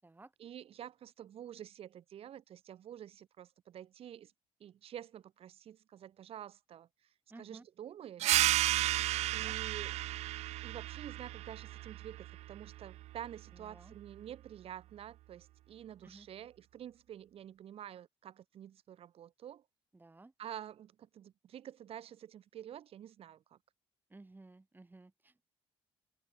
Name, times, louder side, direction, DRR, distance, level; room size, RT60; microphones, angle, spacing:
voice 1, 0.4-4.3 4.6-6.9 7.3-8.4 9.3-9.9 10.6-19.6 20.4-23.6, right 10 dB, 60° right, 1.2 m, -49 dB
voice 2, 7.3-7.7 9.3-9.5 13.5-14.0 16.0-16.3 19.9-20.3 24.1-25.4, right 2 dB, 15° right, 4.3 m, -56 dB
sound 1, 8.2-13.4, right 16 dB, 75° right, 0.5 m, -33 dB
open air
cardioid pair, 85°, 11 cm